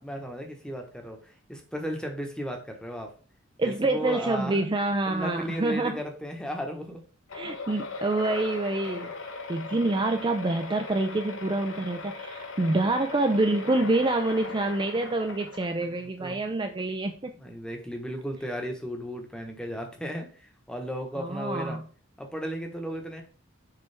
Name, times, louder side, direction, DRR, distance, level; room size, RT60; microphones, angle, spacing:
voice 1, 0.0-3.1 3.6-4.7 5.1-7.0 15.8-16.4 17.3-21.8 22.2-23.2, equal, 5° left, 3 dB, 1.2 m, -35 dB
voice 2, 3.6-6.0 7.3-9.1 9.5-17.3 21.2-21.8, right 2 dB, 25° right, 5 dB, 0.4 m, -27 dB
sound 1, 7.3-16.1, left 4 dB, 85° left, 1.0 m, -39 dB
6.8 x 4.5 x 3.4 m, 0.39 s
head